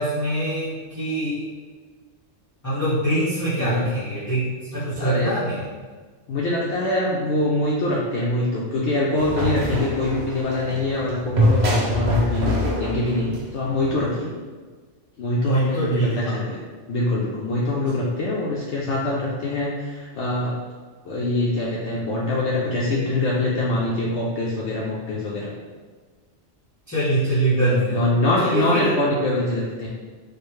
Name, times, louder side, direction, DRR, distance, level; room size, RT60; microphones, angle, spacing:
voice 1, 0.0-1.5 2.6-5.6 15.4-16.4 26.9-28.0 28.4-29.0, right 1 dB, 15° left, -12 dB, 0.8 m, -23 dB
voice 2, 3.6-3.9 5.0-5.3 6.3-14.3 15.2-16.6 16.9-20.5 21.0-25.5 27.6-29.9, left 1 dB, 70° left, -5 dB, 0.8 m, -24 dB
sound 1, 9.2-14.0, left 1 dB, 40° right, 0.7 m, -24 dB
4.4 x 2.4 x 3.1 m, 1.5 s
omnidirectional pair, 1.3 m